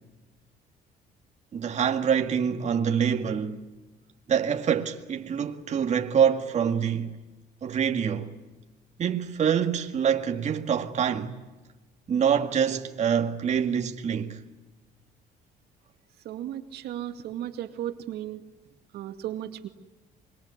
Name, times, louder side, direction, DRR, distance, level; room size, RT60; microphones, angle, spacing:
voice 1, 1.5-3.6 4.3-7.1 7.6-8.3 9.0-11.4 12.1-14.4, right 8 dB, 45° right, 2.1 m, -25 dB
voice 2, 16.2-18.4 18.9-19.7, right 12 dB, 75° right, 2.2 m, -35 dB
26.0 x 23.0 x 9.7 m
cardioid pair, 110°, 17 cm